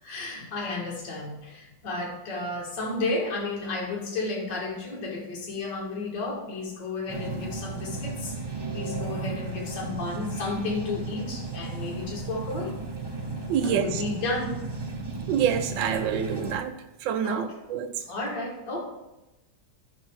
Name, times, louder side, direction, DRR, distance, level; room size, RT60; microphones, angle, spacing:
voice 1, 0.0-12.7 13.6-14.6 17.2-17.5 18.1-18.8, left 3 dB, 65° left, 2.4 m, -32 dB
sound 1, 7.1-16.6, right 3 dB, 25° right, 0.6 m, -34 dB
voice 2, 13.5-14.0 15.3-16.7 17.0-17.9, right 8 dB, 75° right, 1.2 m, -27 dB
14.5 x 5.7 x 3.1 m
omnidirectional pair, 2.1 m